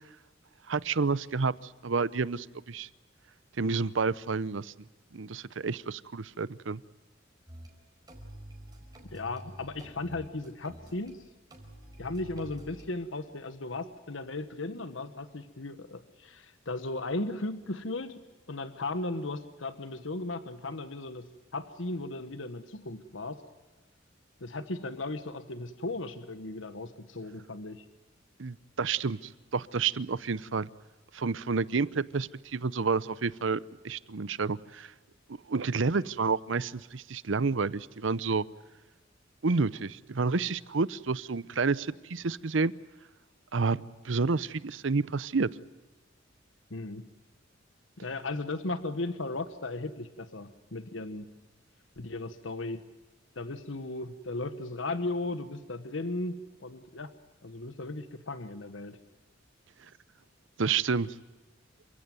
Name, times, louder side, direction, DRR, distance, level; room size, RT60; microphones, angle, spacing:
voice 1, 0.7-2.9 3.6-4.7 5.1-6.8 28.4-30.7 31.1-33.6 33.8-34.9 35.5-38.4 39.4-42.7 43.5-45.5 60.6-61.1, right 4 dB, 70° right, 18 dB, 0.7 m, -29 dB
sound 1, 7.5-7.7 8.1-11.1 11.5-12.9, equal, 20° right, 4.7 m, -48 dB
voice 2, 9.1-11.2 12.0-18.2 18.5-23.4 24.4-27.8 46.7-47.0 48.0-51.3 52.0-52.8 53.3-57.1 57.4-59.0, left 2 dB, 75° left, 11 dB, 1.3 m, -36 dB
28.0 x 16.5 x 9.2 m, 1.2 s
head